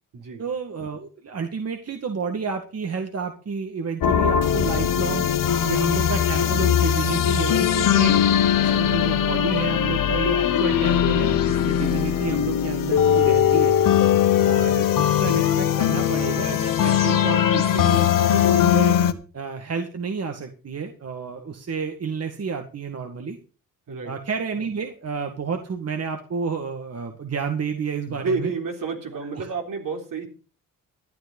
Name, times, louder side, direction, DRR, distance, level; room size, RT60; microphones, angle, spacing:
voice 1, 0.4-8.2 8.6-13.8 14.4-19.0 19.3-23.4 24.0-28.5 29.4-29.5, right 5 dB, 45° right, 5 dB, 2.0 m, -30 dB
sound 1, 4.0-19.1, left 9 dB, 65° left, 1.3 m, -20 dB
voice 2, 28.1-30.3, right 4 dB, 70° right, 3 dB, 3.7 m, -29 dB
13.0 x 9.3 x 5.5 m, 0.35 s
cardioid pair, 80°, 35 cm